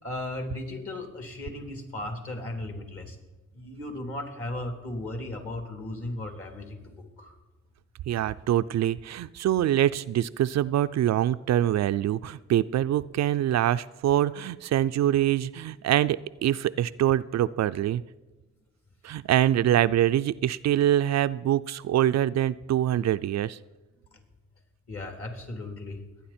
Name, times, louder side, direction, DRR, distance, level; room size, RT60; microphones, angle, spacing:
voice 1, 0.0-3.2 3.5-7.3 24.9-26.0, left 1 dB, 50° left, 3 dB, 3.1 m, -36 dB
voice 2, 8.1-18.0 19.0-23.6, right 12 dB, 65° right, 13 dB, 0.4 m, -24 dB
22.0 x 9.4 x 4.3 m, 1.1 s
cardioid pair, 75°, 29 cm